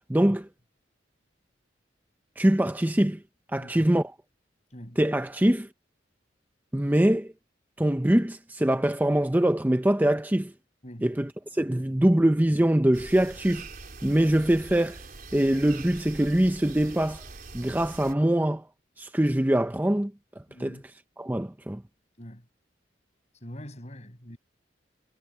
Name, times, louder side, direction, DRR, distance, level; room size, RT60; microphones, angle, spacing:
voice 1, 0.1-0.5 2.4-3.2 3.5-4.1 5.0-5.7 6.7-7.3 7.8-10.5 11.0-13.7 14.0-15.0 15.3-17.2 17.5-18.6 19.0-20.1 20.6-20.8 21.2-21.8, right 1 dB, 10° right, 0.6 m, -23 dB
voice 2, 3.6-3.9 4.7-5.0 10.8-11.1 20.5-20.8 22.2-22.5 23.4-24.4, equal, 40° left, 7.0 m, -43 dB
sound 1, 12.9-18.1, right 3 dB, 55° right, 4.3 m, -43 dB
head